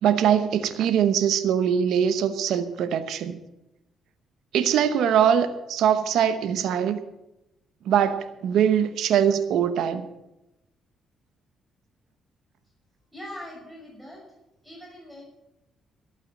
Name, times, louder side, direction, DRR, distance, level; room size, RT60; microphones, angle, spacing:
voice 1, 0.0-3.4 4.5-7.0 7.9-10.1, right 8 dB, 80° right, 10 dB, 0.9 m, -22 dB
voice 2, 13.1-14.2 14.6-15.2, left 1 dB, 5° right, -2 dB, 6.5 m, -41 dB
12.5 x 8.5 x 8.6 m, 0.92 s
cardioid pair, 90°, 0 cm